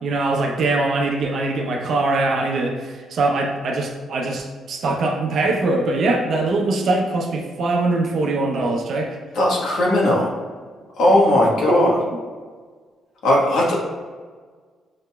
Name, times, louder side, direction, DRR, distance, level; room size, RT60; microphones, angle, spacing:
voice 1, 0.0-9.1 11.7-12.0, right 2 dB, 60° right, 1 dB, 0.7 m, -22 dB
voice 2, 9.3-10.3 11.0-11.9 13.2-13.8, left 1 dB, 75° left, -4 dB, 1.2 m, -17 dB
6.3 x 2.9 x 2.3 m, 1.5 s
cardioid pair, 90°, 0 cm